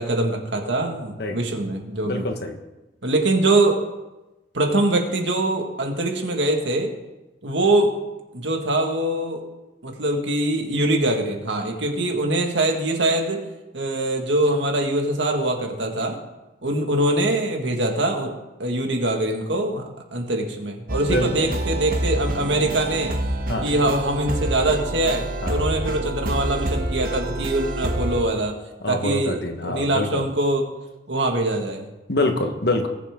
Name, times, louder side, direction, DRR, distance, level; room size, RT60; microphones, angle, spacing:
voice 1, 0.0-2.3 3.0-3.8 4.5-6.9 7.4-7.9 8.3-9.4 9.8-13.4 13.7-16.2 16.6-18.3 18.6-19.8 20.1-23.1 23.6-28.6 28.9-30.6 31.1-31.8, right 1 dB, 75° right, 2 dB, 1.9 m, -23 dB
voice 2, 2.0-2.6 21.0-21.5 23.5-23.7 25.4-25.8 28.8-30.2 32.1-32.9, left 2 dB, 60° left, 5 dB, 1.4 m, -25 dB
sound 1, 20.9-28.2, right 1 dB, 50° right, 1.2 m, -27 dB
19.5 x 7.1 x 3.8 m, 1.0 s
head